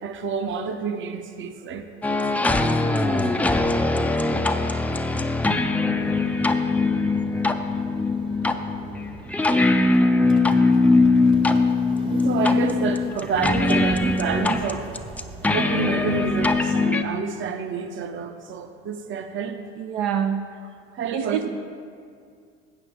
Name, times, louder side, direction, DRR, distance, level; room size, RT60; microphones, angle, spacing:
voice 1, 0.0-1.9 10.4-10.9 12.0-14.9 15.5-19.6 20.9-21.4, right 6 dB, 40° right, 7 dB, 0.9 m, -29 dB
sound 1, 2.0-17.0, left 3 dB, 5° left, 0.5 m, -21 dB
sound 2, 6.0-16.6, right 2 dB, 15° right, 0.9 m, -40 dB
voice 2, 19.8-20.4 21.1-21.5, right 8 dB, 70° right, 5 dB, 0.8 m, -25 dB
15.5 x 8.3 x 3.6 m, 2.3 s
supercardioid pair, 105°, 29 cm